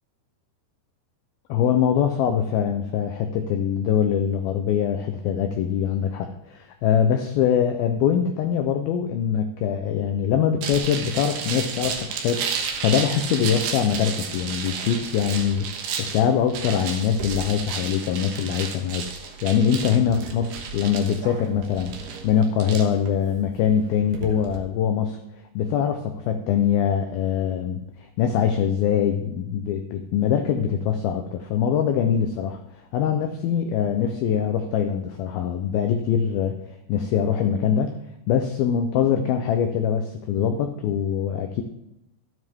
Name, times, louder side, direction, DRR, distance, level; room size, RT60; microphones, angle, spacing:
voice 1, 1.5-25.2 25.6-32.6 32.9-36.6 36.9-37.9 38.3-41.6, left 8 dB, 90° left, 6 dB, 2.1 m, -23 dB
sound 1, 10.6-24.6, right 6 dB, 70° right, 2.9 m, -32 dB
12.5 x 9.7 x 3.6 m, 0.84 s
omnidirectional pair, 5.2 m